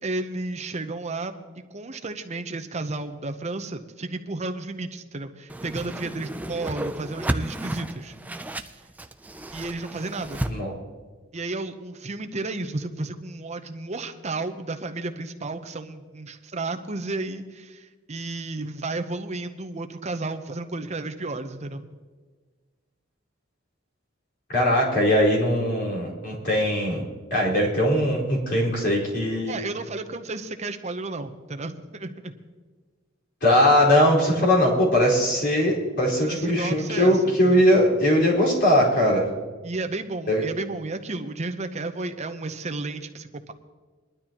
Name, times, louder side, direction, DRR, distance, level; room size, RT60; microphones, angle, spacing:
voice 1, 0.0-1.3 1.7-8.2 9.5-10.4 11.3-22.0 29.5-32.3 36.2-37.6 39.6-43.5, right 2 dB, 35° right, 7 dB, 0.8 m, -32 dB
Whoosh swoosh swish, 5.5-10.5, right 1 dB, 10° right, 0.4 m, -32 dB
voice 2, 24.5-27.0 27.3-29.5 33.4-39.3 40.3-40.4, equal, 55° left, -5 dB, 4.6 m, -20 dB
21.0 x 12.0 x 3.0 m, 1.4 s
head